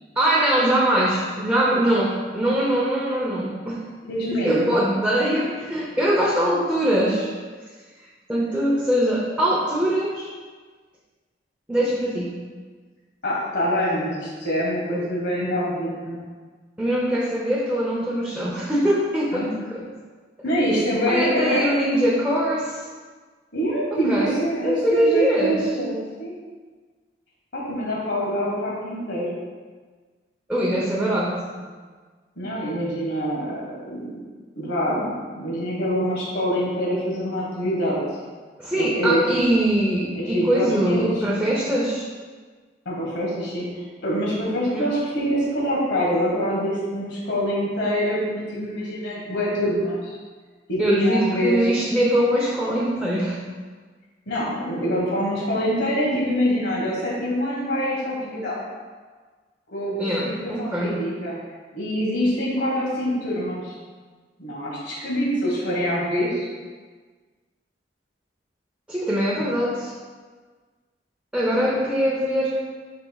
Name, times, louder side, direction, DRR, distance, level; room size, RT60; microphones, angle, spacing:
voice 1, 0.1-3.8 4.4-7.3 8.3-10.3 11.7-12.3 16.8-19.8 21.1-22.8 24.1-24.4 24.6-25.7 30.5-31.4 38.6-42.1 44.7-44.9 50.8-53.4 60.0-61.0 68.9-69.9 71.3-72.6, right 1 dB, 5° right, -6 dB, 0.8 m, -22 dB
voice 2, 4.1-4.7 13.2-16.2 19.3-19.5 20.4-21.6 23.5-26.3 27.5-29.4 32.4-34.2 34.5-38.0 38.7-39.2 40.1-41.2 42.8-50.1 50.7-51.6 54.3-58.6 59.7-61.3 61.7-63.7 64.4-66.5, equal, 75° left, -5 dB, 1.5 m, -25 dB
10.0 x 4.6 x 2.3 m, 1.4 s
head